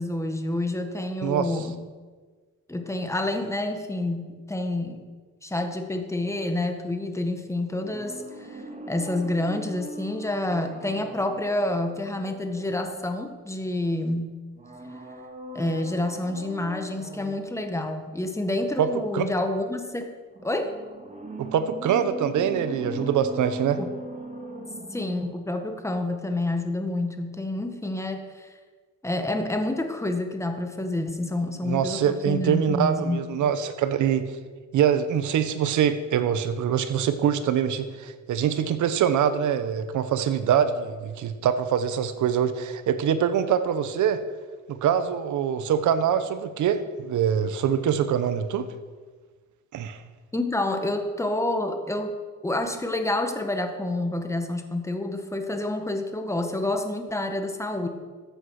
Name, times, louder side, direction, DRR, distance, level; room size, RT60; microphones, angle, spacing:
voice 1, 0.0-1.8 2.7-5.0 5.4-14.3 15.5-20.1 20.4-20.7 23.8-23.9 24.9-28.5 29.0-33.2 50.3-52.2 52.4-57.9, left 1 dB, 10° left, 6 dB, 1.6 m, -28 dB
sound 1, 7.7-13.5 14.5-17.5 20.3-25.5 25.8-25.9, right 1 dB, 25° right, 2.3 m, -39 dB
voice 2, 21.4-23.8 31.6-34.3 34.7-44.2 44.7-48.7 49.7-50.0, right 8 dB, 75° right, 12 dB, 1.1 m, -24 dB
14.0 x 8.1 x 6.5 m, 1.4 s
cardioid pair, 90°, 30 cm